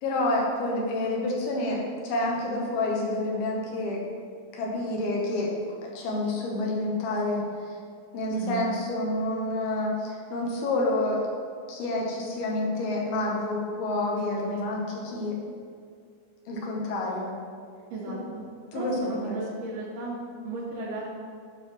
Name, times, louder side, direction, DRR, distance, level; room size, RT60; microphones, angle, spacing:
voice 1, 0.0-4.0 4.5-7.8 8.1-11.2 11.7-15.4 16.5-17.3 18.1-18.2 18.7-19.4, left 2 dB, 80° left, -2 dB, 3.1 m, -28 dB
voice 2, 8.3-8.7 14.5-14.6 17.9-18.4 18.7-20.2 20.4-21.1, right 3 dB, 75° right, -11 dB, 3.6 m, -35 dB
11.5 x 5.6 x 3.2 m, 2.2 s
omnidirectional pair, 4.4 m